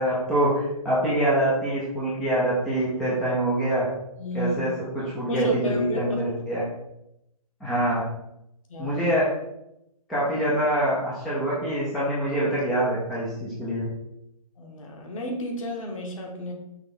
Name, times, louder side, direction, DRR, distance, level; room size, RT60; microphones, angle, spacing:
voice 1, 0.0-3.9 4.3-6.6 7.6-8.0 8.8-9.3 10.1-13.8, right 1 dB, ahead, -9 dB, 0.3 m, -25 dB
voice 2, 4.2-4.6 5.3-6.2 8.7-9.0 14.6-16.5, left 1 dB, 55° left, 1 dB, 1.5 m, -32 dB
5.9 x 3.2 x 5.2 m, 0.83 s
hypercardioid pair, 160°, 20 cm